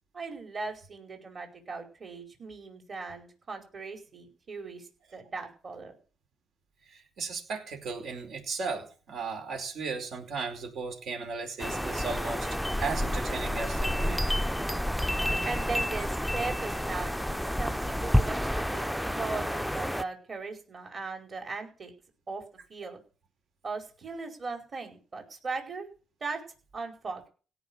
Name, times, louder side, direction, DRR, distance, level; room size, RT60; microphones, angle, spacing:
voice 1, 0.1-5.9 15.4-21.9 22.3-22.4 22.7-23.0 23.6-25.9 26.2-26.4 26.7-27.3, right 4 dB, 40° right, 3 dB, 5.0 m, -38 dB
voice 2, 6.8-14.2, right 4 dB, 70° right, 4 dB, 4.7 m, -36 dB
sound 1, 11.6-20.0, equal, ahead, 0.6 m, -29 dB
17.0 x 5.9 x 9.1 m, 0.38 s
cardioid pair, 90°, 0 cm